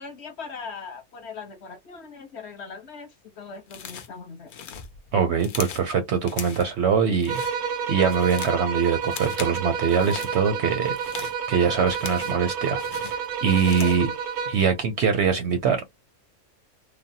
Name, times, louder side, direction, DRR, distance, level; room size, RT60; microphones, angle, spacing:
voice 1, 0.0-4.5 13.8-13.9, left 5 dB, 55° left, 0.9 m, -40 dB
sound 1, 3.7-4.2 4.5-5.9 6.3-6.7 7.1-7.6 7.9-8.6 9.0-9.6 9.9-10.3 10.8-12.5 12.8-14.1, left 7 dB, 85° left, 0.4 m, -39 dB
voice 2, 5.1-7.4 7.9-10.9 11.5-14.1 14.5-15.8, right 6 dB, 65° right, 0.7 m, -23 dB
sound 2, 7.3-14.7, right 6 dB, 90° right, 1.1 m, -30 dB
3.3 x 2.0 x 2.6 m
omnidirectional pair, 1.5 m